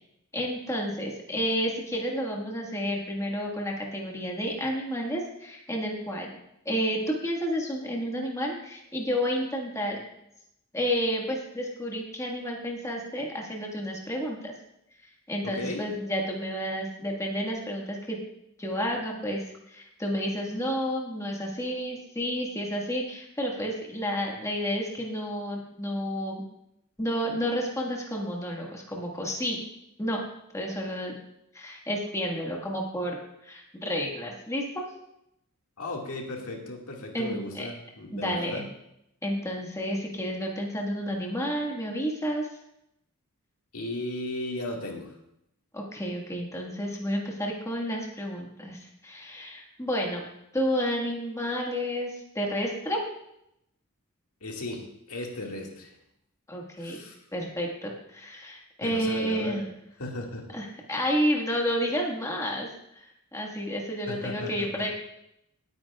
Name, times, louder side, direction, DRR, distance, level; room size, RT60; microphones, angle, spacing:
voice 1, 0.3-6.3 6.6-10.0 10.7-14.5 15.0-18.2 18.6-26.4 27.0-29.6 30.0-30.2 30.5-31.2 31.5-34.6 37.1-37.7 38.1-38.6 39.2-42.5 45.7-50.3 50.5-53.0 56.5-57.0 57.3-59.7 60.5-64.9, equal, 15° left, -1 dB, 1.7 m, -31 dB
voice 2, 15.4-15.8 35.8-38.6 43.7-45.2 54.4-55.9 56.8-57.2 58.8-59.6 60.0-60.5 64.1-64.7, left 2 dB, 80° left, 0 dB, 2.0 m, -36 dB
18.5 x 9.3 x 2.4 m, 0.80 s
head